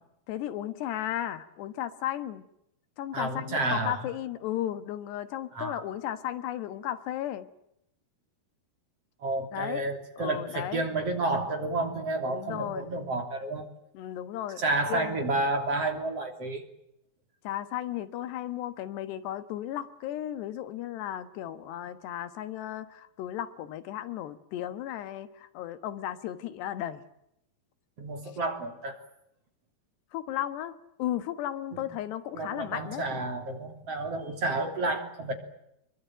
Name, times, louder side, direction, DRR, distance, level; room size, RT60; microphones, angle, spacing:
voice 1, 0.3-2.5 3.0-7.5 9.5-9.9 10.2-10.9 12.3-12.9 14.0-14.6 14.9-15.2 17.5-27.0 30.1-33.2, left 12 dB, 85° left, 3.6 m, -35 dB
voice 2, 3.1-4.1 5.5-5.8 9.2-13.7 14.6-16.6 28.0-28.9 31.7-31.9 32.3-35.3, right 2 dB, 40° right, 4.0 m, -30 dB
26.5 x 23.0 x 9.2 m
omnidirectional pair, 4.7 m